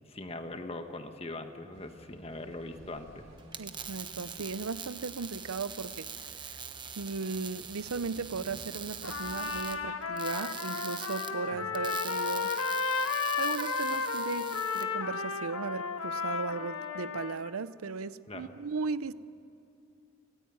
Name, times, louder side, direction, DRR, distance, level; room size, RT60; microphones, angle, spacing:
voice 1, 0.1-3.3 18.3-18.5, left 2 dB, 30° left, 1.4 m, -41 dB
sound 1, 1.7-9.9, equal, 70° right, 5.3 m, -55 dB
sound 2, 3.4-14.9, right 7 dB, 20° right, 1.0 m, -43 dB
voice 2, 3.6-6.6 7.0-12.5 13.4-19.1, right 4 dB, 85° right, 0.6 m, -37 dB
Trumpet, 9.0-17.5, left 5 dB, 85° left, 1.5 m, -33 dB
25.5 x 18.0 x 9.4 m
head